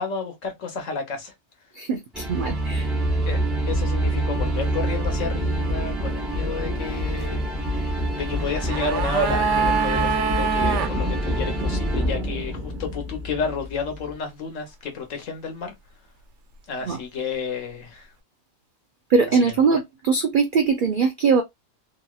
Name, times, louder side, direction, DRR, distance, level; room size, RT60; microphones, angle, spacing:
voice 1, 0.0-1.3 3.3-3.4 3.7-7.4 8.1-15.7 16.7-18.1 19.7-19.8, left 4 dB, 70° left, 1.2 m, -31 dB
voice 2, 1.7-2.9 16.8-17.0 19.1-21.4, right 5 dB, 85° right, 0.4 m, -21 dB
sound 1, 2.1-14.1, right 1 dB, ahead, 0.6 m, -26 dB
sound 2, 8.3-10.9 11.2-11.3, right 6 dB, 65° right, 0.9 m, -24 dB
3.0 x 2.7 x 2.3 m
omnidirectional pair, 1.4 m